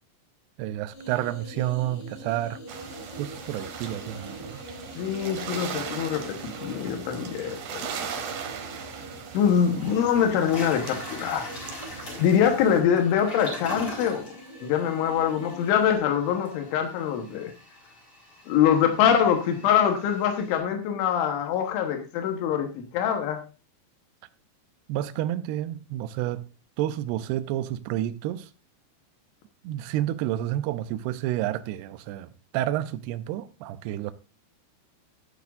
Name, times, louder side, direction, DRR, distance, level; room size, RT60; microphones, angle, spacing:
voice 1, 0.6-2.6 3.2-4.6 24.9-26.4 26.8-28.5 29.6-34.1, right 13 dB, 85° right, 2.3 m, -30 dB
sound 1, 0.9-16.0, equal, 65° left, 5.9 m, -44 dB
sound 2, 2.7-12.8, right 7 dB, 70° right, 3.0 m, -39 dB
voice 2, 5.0-6.4 6.6-7.8 9.3-11.5 12.2-17.5 18.5-23.4, left 8 dB, 85° left, 3.6 m, -24 dB
Toilet flush, 9.2-9.3 9.8-20.6, left 1 dB, 30° left, 4.3 m, -42 dB
13.5 x 9.4 x 2.5 m
omnidirectional pair, 5.4 m